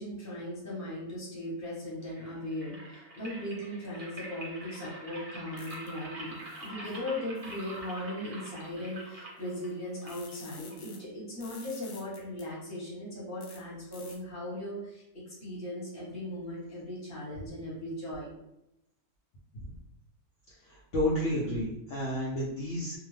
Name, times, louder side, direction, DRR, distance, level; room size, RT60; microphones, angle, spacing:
voice 1, 0.0-18.3, left 1 dB, 15° left, -6 dB, 0.9 m, -38 dB
sound 1, 2.0-11.0, right 1 dB, 40° right, 0.5 m, -46 dB
sound 2, 5.6-5.9 6.4-7.0 7.4-7.9 9.0-9.1 9.4-11.0 11.4-12.4 13.4-13.6 13.9-14.2, left 5 dB, 85° left, 1.2 m, -51 dB
voice 2, 20.7-23.0, left 1 dB, 65° left, -5 dB, 0.8 m, -31 dB
2.6 x 2.1 x 3.2 m, 0.84 s
omnidirectional pair, 1.6 m